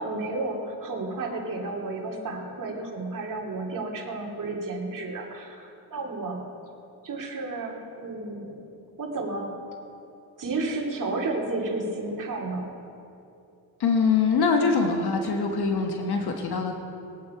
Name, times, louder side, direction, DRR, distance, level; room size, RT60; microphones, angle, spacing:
voice 1, 0.0-6.4 7.0-8.6 9.0-9.5 10.4-12.7, right 2 dB, 50° right, -2 dB, 2.4 m, -32 dB
voice 2, 13.8-16.7, left 5 dB, 65° left, 3 dB, 1.3 m, -23 dB
20.5 x 8.4 x 4.7 m, 2.7 s
cardioid pair, 65°, 41 cm